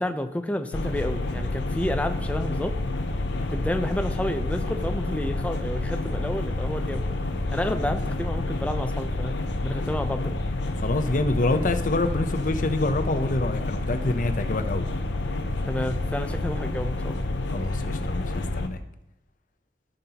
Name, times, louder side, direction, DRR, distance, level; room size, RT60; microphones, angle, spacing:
voice 1, 0.0-2.8 3.5-7.2 7.5-9.3 9.6-10.4 15.7-17.3, left 1 dB, 10° left, 7 dB, 0.5 m, -30 dB
sound 1, 0.7-18.7, left 2 dB, 85° left, 0.7 m, -29 dB
voice 2, 10.8-14.9 17.5-18.8, left 2 dB, 50° left, 9 dB, 0.6 m, -27 dB
15.0 x 5.3 x 2.9 m, 0.86 s
head